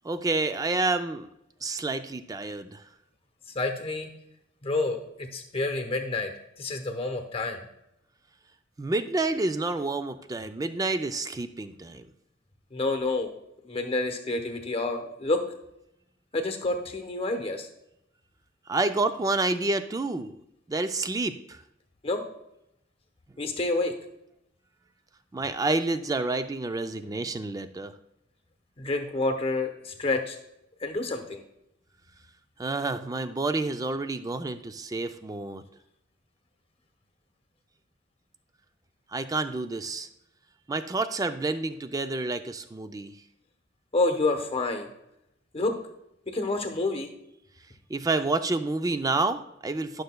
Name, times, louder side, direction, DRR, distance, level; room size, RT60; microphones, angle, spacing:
voice 1, 0.0-1.3 1.6-2.8 8.8-12.1 18.7-20.4 20.7-21.6 25.3-27.9 32.6-35.6 39.1-40.1 40.7-43.1 47.9-50.0, right 3 dB, 20° right, 10 dB, 0.3 m, -29 dB
voice 2, 3.5-4.1 4.6-7.7 12.7-13.3 13.6-15.4 16.3-17.7 22.0-22.2 23.4-23.9 28.8-30.4 30.8-31.4 43.9-44.9 45.5-45.8 46.3-47.1, left 2 dB, 30° left, 5 dB, 0.9 m, -28 dB
11.5 x 6.4 x 2.2 m, 0.81 s
head